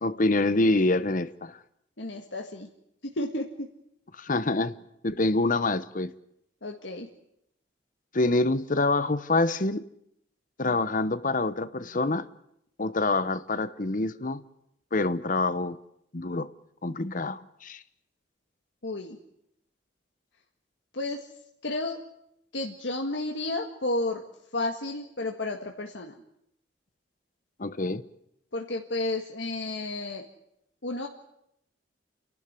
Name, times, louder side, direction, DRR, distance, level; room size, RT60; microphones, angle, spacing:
voice 1, 0.0-1.6 4.2-4.7 5.0-6.1 8.1-9.8 10.6-12.3 12.8-14.4 14.9-15.8 16.1-16.5 16.8-17.8 27.6-28.0, left 2 dB, 45° left, 1.0 m, -26 dB
voice 2, 2.0-2.7 3.1-3.7 6.6-7.1 18.8-19.2 20.9-21.3 21.6-22.0 22.5-24.2 24.5-26.1 28.5-30.3 30.8-31.1, left 2 dB, 85° left, 1.9 m, -32 dB
29.5 x 12.0 x 9.8 m
head